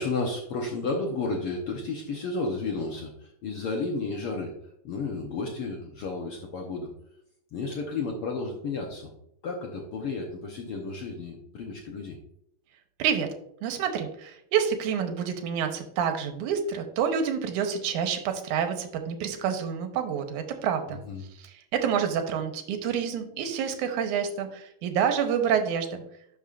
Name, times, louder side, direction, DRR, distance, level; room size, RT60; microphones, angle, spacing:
voice 1, 0.0-4.5 4.8-6.9 7.5-9.1 9.4-12.2 20.9-21.2, left 3 dB, 70° left, 0 dB, 1.4 m, -32 dB
voice 2, 13.6-21.0 21.4-26.0, right 7 dB, 80° right, 6 dB, 2.3 m, -28 dB
11.5 x 5.4 x 2.5 m, 0.74 s
omnidirectional pair, 3.5 m